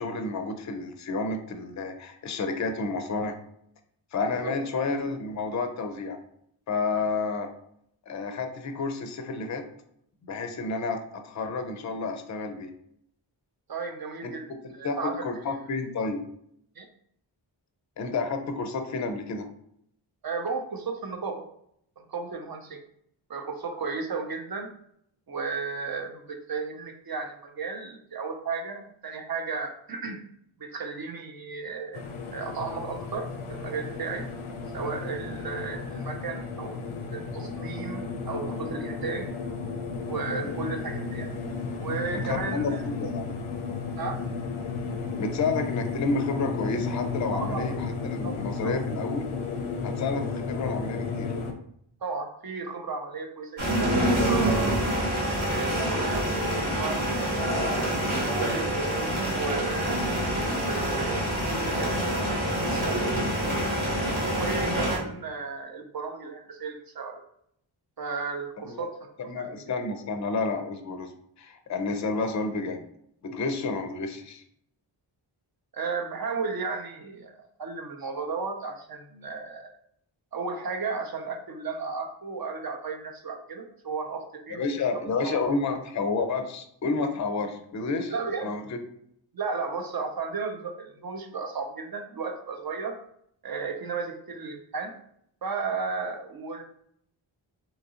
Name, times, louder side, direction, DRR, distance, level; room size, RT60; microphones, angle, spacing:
voice 1, 0.0-3.4 4.1-6.2 6.7-7.5 8.1-9.6 10.3-12.7 14.2-14.3 14.8-16.2 18.0-19.5 40.4-40.5 42.2-43.3 45.2-49.3 49.8-51.3 68.6-68.9 69.2-71.1 71.4-72.8 73.2-74.4 84.5-88.1 88.4-88.6, left 4 dB, 40° left, 7 dB, 0.5 m, -30 dB
voice 2, 13.7-14.5 14.7-15.3 16.8-16.9 20.2-21.4 22.0-22.8 23.3-24.7 25.3-30.2 30.6-32.0 32.3-34.3 34.7-36.8 37.1-39.3 40.1-41.3 41.8-42.8 44.0-44.2 47.3-47.8 48.2-48.8 52.0-55.0 55.5-56.3 56.8-60.0 60.4-62.3 62.6-63.1 64.3-67.2 68.0-69.5 75.7-79.7 80.3-85.4 88.1-88.5 89.3-93.0 93.4-94.9 95.4-96.6, right 4 dB, 45° right, 4 dB, 0.6 m, -34 dB
sound 1, 31.9-51.5, left 4 dB, 85° left, 0.6 m, -33 dB
sound 2, 53.6-65.0, right 1 dB, 75° right, 1.1 m, -26 dB
2.8 x 2.5 x 2.7 m, 0.71 s
cardioid pair, 55°, 49 cm